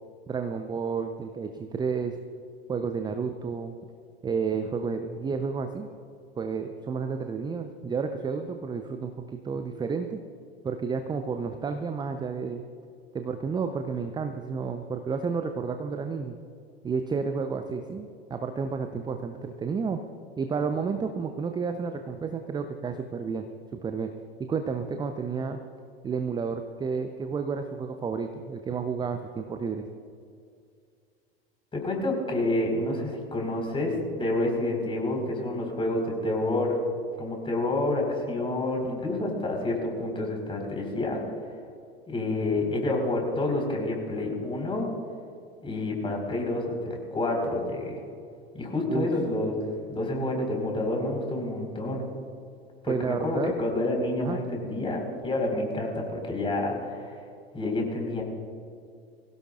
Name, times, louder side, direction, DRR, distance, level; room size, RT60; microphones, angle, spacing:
voice 1, 0.3-2.2 2.7-3.7 4.2-5.9 6.4-10.2 10.6-12.6 13.1-16.4 16.8-20.0 20.4-23.5 23.7-24.1 24.4-25.6 26.0-29.9 48.9-49.1 52.9-53.5 54.2-54.4, right 5 dB, 15° right, 7 dB, 0.7 m, -31 dB
voice 2, 31.7-36.8 37.2-41.2 42.1-44.9 45.6-48.0 48.5-49.6 49.9-52.1 52.8-57.1 57.5-58.2, left 2 dB, 15° left, 1 dB, 4.6 m, -28 dB
23.5 x 16.5 x 2.5 m, 2.3 s
figure-of-eight pair, 80°, 31 cm